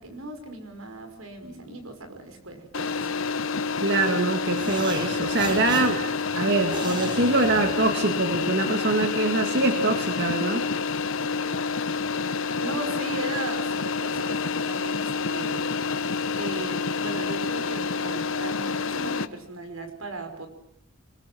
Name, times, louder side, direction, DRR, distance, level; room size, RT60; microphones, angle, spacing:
voice 1, 0.0-3.2 12.5-15.7 16.3-20.5, right 2 dB, 85° right, 7 dB, 5.4 m, -37 dB
sound 1, 2.7-19.3, left 5 dB, 70° left, 1.1 m, -28 dB
voice 2, 3.8-6.0 6.3-10.7, right 2 dB, 55° right, 5 dB, 2.2 m, -24 dB
sound 2, 4.5-8.2, right 2 dB, 20° right, 2.8 m, -37 dB
26.0 x 21.0 x 7.8 m, 0.67 s
head